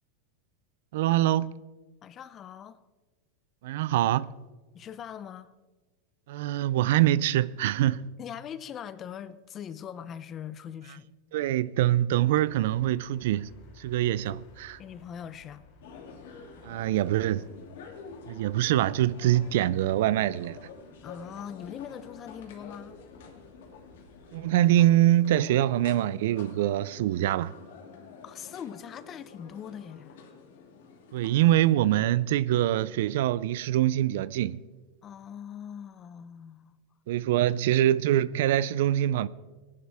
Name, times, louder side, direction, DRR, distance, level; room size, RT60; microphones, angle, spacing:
voice 1, 0.9-1.5 3.6-4.3 6.3-8.1 11.3-13.5 13.8-14.8 16.6-17.4 18.3-20.6 24.3-27.5 31.1-34.6 37.1-39.3, right 13 dB, 70° right, 0.4 m, -24 dB
voice 2, 2.0-2.8 4.7-5.5 8.2-11.1 14.8-15.6 21.0-23.0 28.2-30.2 35.0-36.7, left 8 dB, 30° left, 0.6 m, -41 dB
sound 1, 12.3-24.9, left 1 dB, 55° left, 4.3 m, -57 dB
sound 2, 15.8-31.7, left 5 dB, 75° left, 2.3 m, -49 dB
18.5 x 11.0 x 3.5 m
supercardioid pair, 135°, 0 cm